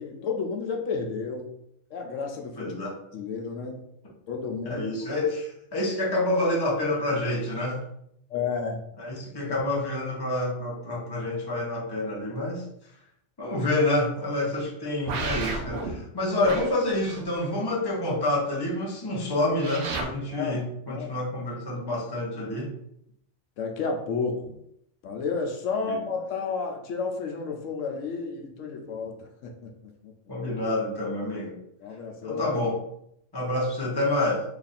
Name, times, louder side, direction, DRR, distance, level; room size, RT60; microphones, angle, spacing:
voice 1, 0.0-1.5 1.9-2.7 3.1-3.8 4.3-4.9 8.3-8.8 20.3-20.6 20.9-21.1 23.6-24.5 25.0-29.5 30.0-30.1 31.8-32.6, left 5 dB, 80° left, 3 dB, 0.9 m, -31 dB
voice 2, 2.6-3.0 4.6-7.8 9.0-12.6 13.4-22.7 25.8-26.0 30.3-31.5 32.2-32.8 33.3-34.4, left 1 dB, 20° left, -4 dB, 0.8 m, -28 dB
sound 1, 15.1-15.9 16.4-17.5 19.6-20.0, right 3 dB, 75° right, 1.0 m, -32 dB
3.0 x 2.4 x 4.1 m, 0.75 s
omnidirectional pair, 1.3 m